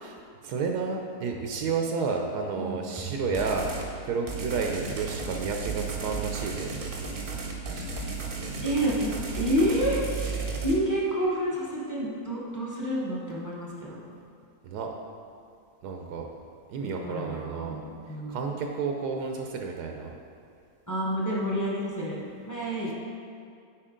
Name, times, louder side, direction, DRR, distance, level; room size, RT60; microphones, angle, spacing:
voice 1, 0.4-3.7 4.0-6.7 7.7-7.9 14.6-14.9 15.8-16.3 16.7-17.8 18.3-20.2, right 4 dB, 80° right, 2 dB, 1.2 m, -31 dB
voice 2, 2.6-2.9 8.6-10.0 10.6-14.0 16.8-18.5 20.9-22.9, equal, 15° left, -6 dB, 0.9 m, -29 dB
sound 1, 3.3-3.9 4.3-10.7, right 5 dB, 45° right, 0.8 m, -34 dB
8.7 x 4.7 x 3.7 m, 2.4 s
omnidirectional pair, 1.7 m